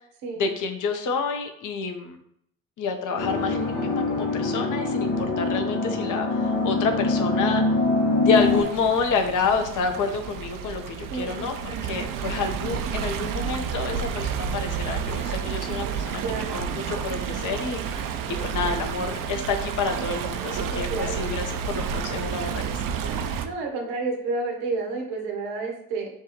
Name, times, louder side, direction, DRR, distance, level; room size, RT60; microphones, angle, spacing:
voice 1, 0.4-2.2 2.8-7.6 8.2-18.0 18.4-22.9, left 5 dB, 45° left, 5 dB, 0.8 m, -28 dB
sound 1, 3.2-8.6, left 3 dB, 70° left, 1.3 m, -24 dB
Stream, 8.3-23.5, right 7 dB, 50° right, 0.6 m, -30 dB
voice 2, 11.1-11.5 16.2-16.7 20.7-21.4 23.4-26.1, right 3 dB, 75° right, 1 dB, 1.3 m, -30 dB
6.8 x 2.3 x 3.0 m, 0.70 s
hypercardioid pair, 60°, 43 cm